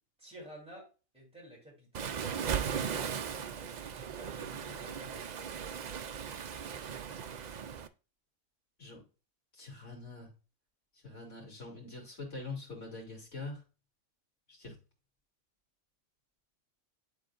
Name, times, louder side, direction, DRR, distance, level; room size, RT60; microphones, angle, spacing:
voice 1, 0.2-0.9 1.1-2.2 2.7-5.6, equal, 5° right, -3 dB, 3.1 m, -51 dB
Waves surf, 1.9-7.9, right 7 dB, 70° right, 0.4 m, -37 dB
voice 2, 9.5-10.3 11.0-13.6 14.5-14.7, left 3 dB, 65° left, -2 dB, 2.9 m, -44 dB
11.0 x 3.8 x 2.5 m, 0.32 s
omnidirectional pair, 1.4 m